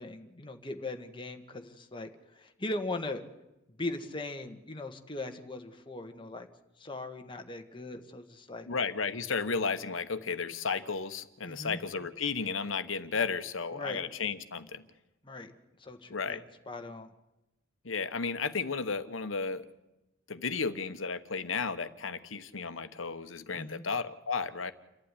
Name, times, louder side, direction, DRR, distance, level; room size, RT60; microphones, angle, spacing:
voice 1, 0.0-2.1 2.3-3.2 3.8-6.5 6.8-8.7 11.4-11.8 13.7-14.0 15.2-15.5 15.8-16.4 16.7-17.1 23.5-23.8, left 2 dB, 25° left, 5 dB, 1.6 m, -39 dB
voice 2, 8.7-14.8 16.1-16.4 17.8-19.7 20.3-24.7, left 5 dB, 75° left, 11 dB, 1.2 m, -33 dB
29.0 x 11.5 x 9.9 m, 0.97 s
head